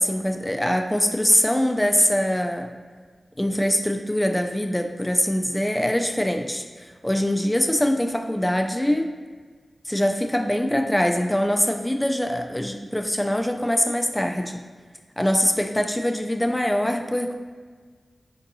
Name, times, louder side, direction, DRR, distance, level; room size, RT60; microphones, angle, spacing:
voice 1, 0.0-2.7 3.4-9.1 9.8-14.6 15.2-17.3, equal, 10° left, 4 dB, 0.3 m, -23 dB
4.4 x 2.7 x 2.6 m, 1.5 s
cardioid pair, 45°, 0 cm